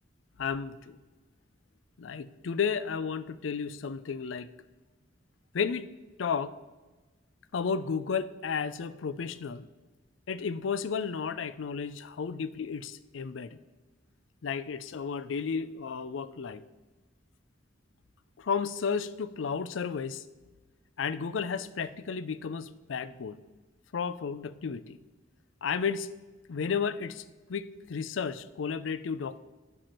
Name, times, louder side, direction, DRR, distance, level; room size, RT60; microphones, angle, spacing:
voice 1, 0.4-1.0 2.0-4.5 5.5-5.9 6.2-6.5 7.5-9.7 10.3-13.6 14.4-16.6 18.4-20.2 21.0-23.4 23.9-25.0 25.6-26.1 26.5-27.2 27.5-29.4, left 6 dB, 85° left, 15 dB, 0.5 m, -33 dB
9.0 x 7.8 x 4.4 m, 1.2 s
head